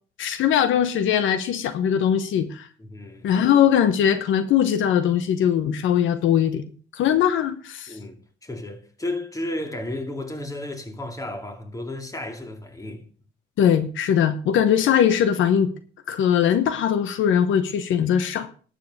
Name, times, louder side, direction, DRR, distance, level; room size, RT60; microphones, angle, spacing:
voice 1, 0.2-2.7 3.2-6.6 6.9-7.9 13.6-15.7 16.1-18.5, left 9 dB, 80° left, 1.0 m, -20 dB
voice 2, 2.8-3.3 7.9-13.0, left 1 dB, 15° left, 2.5 m, -33 dB
11.5 x 7.6 x 6.5 m
cardioid pair, 90°, 20 cm